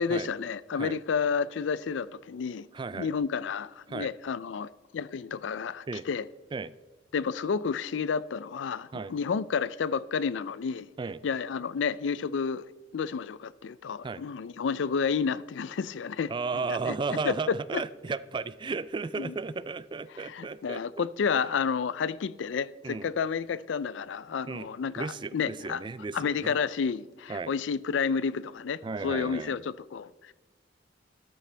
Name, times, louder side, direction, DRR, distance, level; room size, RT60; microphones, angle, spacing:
voice 1, 0.0-2.7 2.9-6.2 7.1-10.9 11.2-12.6 12.9-16.3 16.7-16.9 17.3-17.4 17.7-17.8 19.2-19.3 20.2-25.1 25.3-25.8 26.1-30.3, left 6 dB, 75° left, 0.4 m, -30 dB
voice 2, 2.7-3.1 3.9-4.1 5.9-6.1 6.5-6.7 8.9-9.1 11.0-11.2 14.0-14.2 16.3-21.1 21.3-21.4 22.8-23.1 24.5-24.7 25.0-26.6 27.3-27.5 28.8-29.6, right 4 dB, 25° right, 0.3 m, -34 dB
13.5 x 12.0 x 3.3 m
head